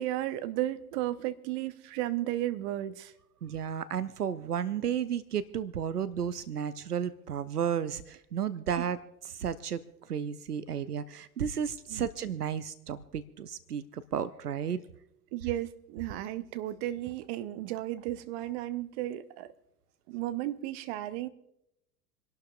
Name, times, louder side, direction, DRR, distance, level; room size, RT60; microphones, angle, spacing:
voice 1, 0.0-3.1 8.8-8.9 11.9-12.0 15.3-19.5 20.1-21.3, right 14 dB, 45° right, 0.9 m, -34 dB
voice 2, 3.4-9.0 9.3-9.8 10.1-14.8, right 8 dB, 80° right, 0.7 m, -33 dB
28.0 x 11.5 x 2.4 m
figure-of-eight pair, 80°, 46 cm